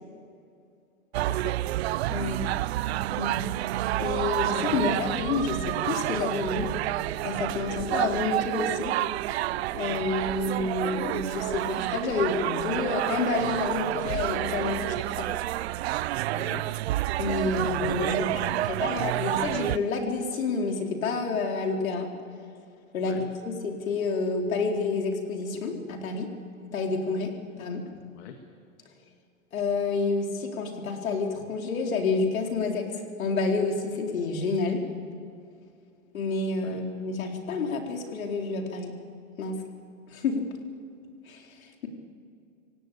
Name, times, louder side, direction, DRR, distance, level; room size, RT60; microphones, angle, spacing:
sound 1, 1.1-19.8, right 15 dB, 50° right, 0.6 m, -29 dB
voice 1, 1.3-1.6 2.1-2.3 16.3-16.6 23.0-23.3 28.1-28.4 36.6-36.8, left 9 dB, 50° left, 5 dB, 2.0 m, -42 dB
voice 2, 4.0-6.7 7.2-8.9 9.7-15.3 17.2-22.1 22.9-26.3 26.7-27.3 27.6-27.8 29.5-32.9 33.2-34.8 36.1-38.9 39.4-39.6 40.1-40.4 41.3-41.4, left 4 dB, 75° left, 2 dB, 4.2 m, -29 dB
27.0 x 17.5 x 8.6 m, 2.4 s
hypercardioid pair, 145°, 41 cm